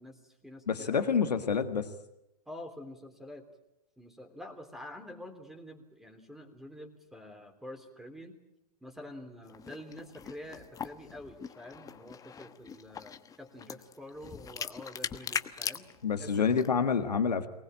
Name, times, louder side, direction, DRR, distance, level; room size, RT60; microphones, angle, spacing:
voice 1, 0.0-1.2 2.5-3.5 4.0-8.4 8.8-15.9 16.2-16.5, left 1 dB, ahead, 6 dB, 3.4 m, -47 dB
voice 2, 0.7-1.9 16.0-17.5, left 6 dB, 90° left, 8 dB, 1.6 m, -28 dB
sound 1, 9.4-16.7, left 7 dB, 15° left, 1.1 m, -41 dB
24.0 x 19.5 x 8.8 m, 0.89 s
hypercardioid pair, 110°, 20 cm